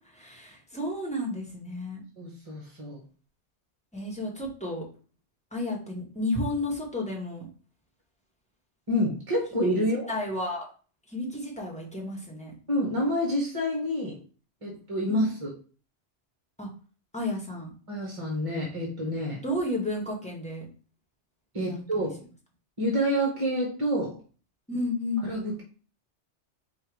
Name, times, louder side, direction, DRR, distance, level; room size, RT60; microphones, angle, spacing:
voice 1, 0.1-2.0 3.9-4.8 5.5-7.4 9.8-10.7 11.1-12.5 15.1-15.3 16.6-16.7 17.1-17.7 19.4-20.6 21.6-22.0 24.7-25.3, left 1 dB, 5° left, -1 dB, 1.2 m, -32 dB
voice 2, 2.2-3.0 8.9-10.1 12.7-14.2 14.6-15.5 17.9-19.4 21.5-22.2 22.8-24.2 25.2-25.6, equal, 30° right, -1 dB, 1.1 m, -28 dB
4.5 x 2.5 x 4.7 m, 0.38 s
omnidirectional pair, 1.2 m